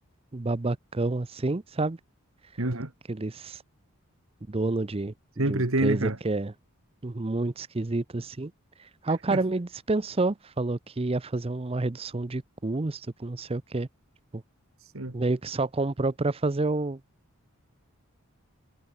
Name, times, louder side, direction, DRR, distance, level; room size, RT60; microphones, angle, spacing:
voice 1, 0.3-2.0 3.1-3.6 4.5-6.5 7.0-8.5 9.0-13.9 14.3-14.4 15.1-17.0, right 2 dB, 25° right, 0.6 m, -29 dB
voice 2, 2.6-2.9 5.4-6.2 9.1-9.4 14.8-15.2, right 2 dB, 65° right, 2.0 m, -28 dB
head